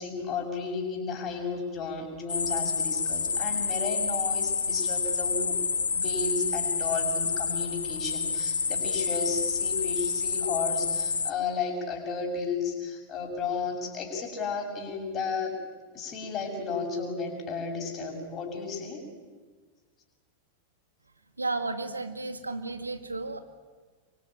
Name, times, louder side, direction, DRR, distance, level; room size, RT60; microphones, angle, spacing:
voice 1, 0.0-5.5 5.9-15.6 15.9-19.0, left 4 dB, 30° left, 3 dB, 6.7 m, -33 dB
sound 1, 2.3-11.3, left 5 dB, 75° left, 0.8 m, -28 dB
voice 2, 21.4-23.4, right 3 dB, 80° right, 8 dB, 2.1 m, -33 dB
26.0 x 24.0 x 8.9 m, 1.4 s
figure-of-eight pair, 90°, 0 cm